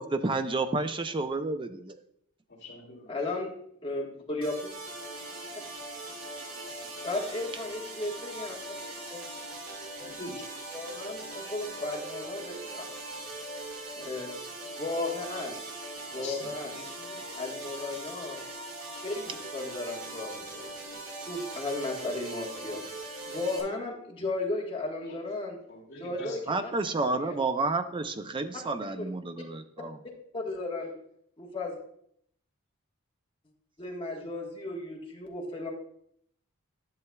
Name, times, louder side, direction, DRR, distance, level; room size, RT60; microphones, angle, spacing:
voice 1, 0.0-2.0 26.5-30.0, right 3 dB, 25° right, 9 dB, 0.4 m, -30 dB
voice 2, 2.5-3.2 10.0-10.4 11.0-11.1 11.4-11.5 11.8-11.9 16.1-17.2 19.1-19.2 25.0-25.2 25.7-26.4, left 2 dB, 50° left, -4 dB, 2.3 m, -45 dB
voice 3, 3.1-3.5 3.8-4.7 7.0-8.5 9.1-9.2 10.0-10.1 10.7-12.8 14.0-14.3 14.8-15.6 16.1-16.7 17.3-18.4 19.0-20.6 21.3-22.8 23.3-25.6 26.0-26.7 27.1-27.3 30.3-30.9 31.4-31.8 33.8-35.7, left 2 dB, 25° left, -2 dB, 1.4 m, -35 dB
sound 1, 4.4-23.6, right 2 dB, 65° right, 1.9 m, -41 dB
10.5 x 6.8 x 2.3 m, 0.68 s
head